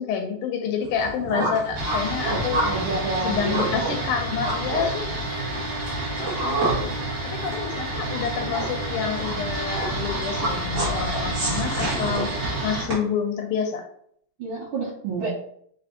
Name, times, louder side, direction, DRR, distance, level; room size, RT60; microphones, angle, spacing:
voice 1, 0.0-2.7 3.2-5.1 6.1-6.9 7.2-12.3 12.6-13.8, left 7 dB, 85° left, 5 dB, 1.5 m, -28 dB
sound 1, 0.8-12.9, right 2 dB, 30° right, 1.1 m, -30 dB
sound 2, 1.8-12.8, right 1 dB, 55° right, 1.6 m, -29 dB
voice 2, 2.6-3.8 14.4-15.3, right 3 dB, 75° right, -9 dB, 1.7 m, -29 dB
4.2 x 2.6 x 2.7 m, 0.66 s
omnidirectional pair, 2.4 m